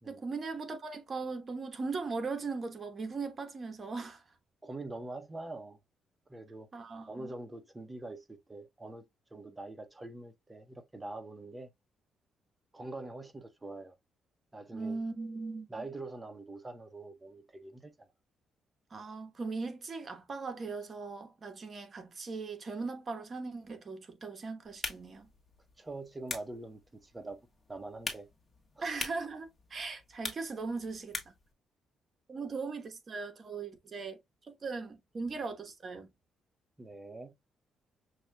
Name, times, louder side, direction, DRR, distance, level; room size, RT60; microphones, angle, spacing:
voice 1, 0.1-4.2 6.7-7.3 14.7-15.9 18.9-25.3 28.8-31.2 32.3-34.2 34.5-36.1, right 4 dB, 40° right, 1.0 m, -39 dB
voice 2, 4.6-5.8 6.3-6.7 7.1-9.0 9.3-11.7 12.7-14.0 14.5-15.0 15.7-17.9 25.8-27.4 27.7-28.3 28.8-28.9 36.8-37.3, right 2 dB, 20° right, 0.7 m, -44 dB
sound 1, 24.6-31.5, left 3 dB, 25° left, 1.4 m, -44 dB
6.3 x 2.7 x 2.2 m
cardioid pair, 90°, 0 cm